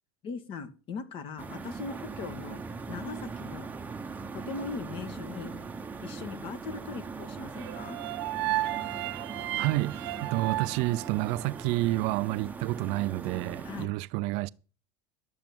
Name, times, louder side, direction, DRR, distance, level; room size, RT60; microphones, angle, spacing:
voice 1, 0.2-2.6 2.9-3.7 4.3-5.5 6.0-8.0 13.6-13.9, left 5 dB, 45° left, 1.9 m, -39 dB
sound 1, 1.4-13.9, right 4 dB, 15° right, 1.0 m, -40 dB
sound 2, 7.6-11.8, right 16 dB, 80° right, 1.1 m, -34 dB
voice 2, 9.6-14.5, right 19 dB, 60° right, 0.6 m, -29 dB
12.0 x 7.3 x 9.0 m
supercardioid pair, 135°, 13 cm